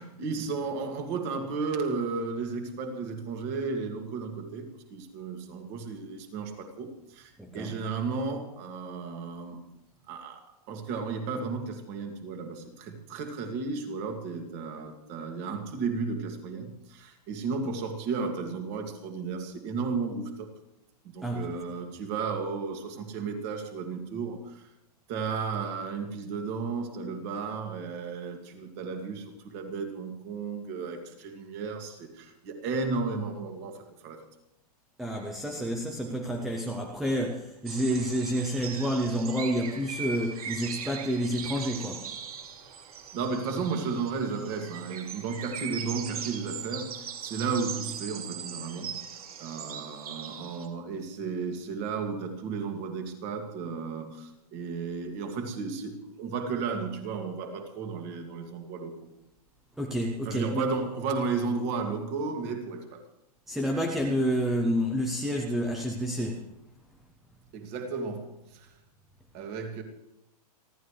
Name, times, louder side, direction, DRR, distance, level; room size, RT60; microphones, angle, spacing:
voice 1, 0.0-9.6 10.1-10.4 10.7-20.5 21.0-24.7 25.1-34.2 43.1-58.9 60.2-63.0 67.5-68.7 69.3-69.8, right 4 dB, 25° right, 5 dB, 2.1 m, -34 dB
voice 2, 7.4-7.7 21.2-21.6 35.0-42.1 59.8-60.6 63.5-66.4, equal, ahead, 1 dB, 0.4 m, -29 dB
sound 1, 37.7-50.7, right 7 dB, 65° right, 2.7 m, -40 dB
29.5 x 12.0 x 3.2 m, 0.84 s
hypercardioid pair, 180°, 20 cm